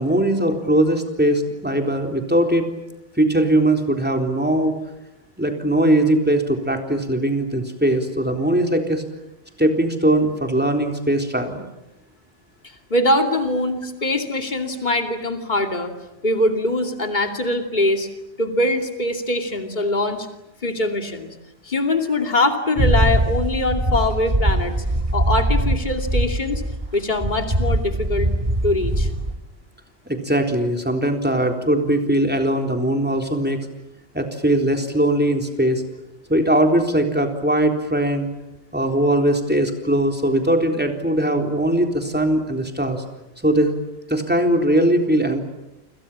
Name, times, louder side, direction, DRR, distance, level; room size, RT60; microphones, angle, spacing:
voice 1, 0.0-2.7 3.2-4.8 5.4-9.0 9.6-11.7 30.1-33.6 34.1-35.8 36.3-38.3 38.7-43.0 43.4-43.7 44.1-45.4, right 1 dB, 10° right, 4 dB, 3.8 m, -20 dB
voice 2, 12.6-15.9 16.2-18.1 18.4-20.3 20.6-21.3 21.6-24.7 25.1-26.6 26.9-28.3 28.6-29.1, left 1 dB, 40° left, 5 dB, 2.8 m, -22 dB
sound 1, 22.8-27.0 27.2-29.4, right 1 dB, 30° right, 2.7 m, -21 dB
29.5 x 27.0 x 7.5 m, 0.93 s
omnidirectional pair, 1.2 m